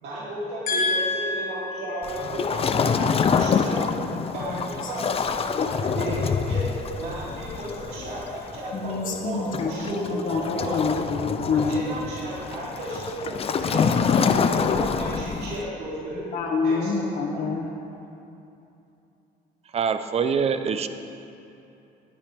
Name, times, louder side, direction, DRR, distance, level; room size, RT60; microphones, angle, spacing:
voice 1, 0.0-3.8 4.3-10.9 11.5-16.3 16.6-17.0, right 1 dB, 75° right, -8 dB, 3.3 m, -34 dB
voice 2, 0.7-1.8 4.5-4.6 5.0-5.1 8.7-11.9 16.1-17.7, left 4 dB, 55° left, -1 dB, 1.8 m, -27 dB
Waves surf, 2.0-15.7, left 6 dB, 35° left, 0.5 m, -26 dB
voice 3, 19.7-20.9, right 6 dB, 35° right, 10 dB, 0.7 m, -24 dB
19.5 x 9.0 x 3.5 m, 2.8 s
cardioid pair, 110°, 17 cm